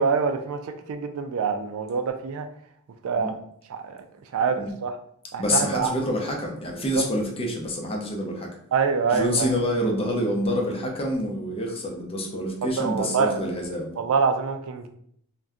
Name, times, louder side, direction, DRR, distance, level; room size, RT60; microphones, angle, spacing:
voice 1, 0.0-2.5 3.0-3.3 3.7-4.0 4.3-5.0 5.3-5.9 6.9-7.0 8.7-9.5 12.8-13.4 14.0-14.9, right 5 dB, 70° right, 7 dB, 0.4 m, -25 dB
voice 2, 5.4-8.5 9.1-14.0, equal, 25° left, 0 dB, 0.6 m, -27 dB
2.6 x 2.2 x 3.5 m, 0.65 s
head